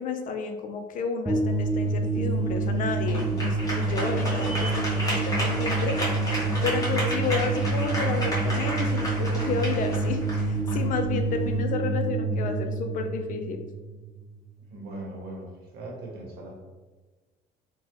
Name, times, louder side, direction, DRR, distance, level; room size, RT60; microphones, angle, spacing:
voice 1, 0.0-6.1 6.6-13.6, left 5 dB, 50° left, 6 dB, 0.4 m, -31 dB
sound 1, 1.2-14.4, right 3 dB, ahead, 0.6 m, -27 dB
sound 2, 1.5-11.6, equal, 20° left, 1.3 m, -33 dB
voice 2, 14.7-16.6, right 2 dB, 75° right, -1 dB, 0.9 m, -39 dB
3.3 x 2.2 x 2.8 m, 1.2 s
cardioid pair, 110°, 17 cm